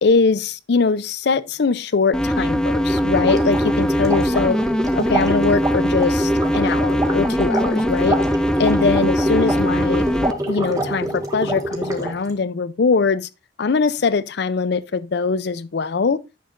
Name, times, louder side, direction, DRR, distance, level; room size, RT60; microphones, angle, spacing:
voice 1, 0.0-4.6 5.0-8.2 8.6-10.0 10.5-13.3 13.6-16.2, left 4 dB, 60° left, 0.5 m, -21 dB
sound 1, 2.1-10.3, equal, 5° left, 0.4 m, -21 dB
sound 2, 2.9-12.3, right 1 dB, 20° right, 1.5 m, -26 dB
10.0 x 7.0 x 2.5 m
head